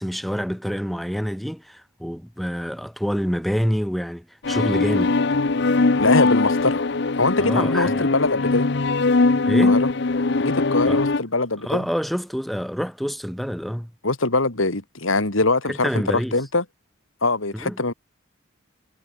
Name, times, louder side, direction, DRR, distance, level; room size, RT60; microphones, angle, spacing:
voice 1, 0.0-5.1 7.4-8.1 9.5-9.8 10.9-11.0 11.6-13.9 15.7-16.4 17.5-17.8, equal, ahead, 1.0 m, -27 dB
sound 1, 4.4-11.2, left 3 dB, 55° left, 0.8 m, -20 dB
voice 2, 6.0-6.8 7.2-8.7 9.7-9.9 10.4-11.8 14.0-16.6 17.2-17.9, left 3 dB, 85° left, 3.0 m, -22 dB
head